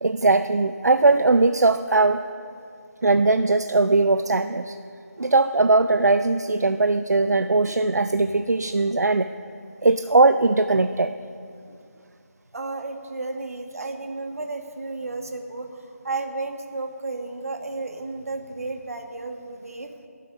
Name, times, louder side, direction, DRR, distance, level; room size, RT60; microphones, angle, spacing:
voice 1, 0.0-2.2 3.0-4.7 5.2-9.3 9.8-11.1, right 3 dB, 80° right, 10 dB, 0.5 m, -20 dB
voice 2, 12.5-15.7 16.0-19.9, right 3 dB, 60° right, 5 dB, 1.5 m, -32 dB
21.0 x 7.6 x 5.4 m, 2.4 s
figure-of-eight pair, 160°, 9 cm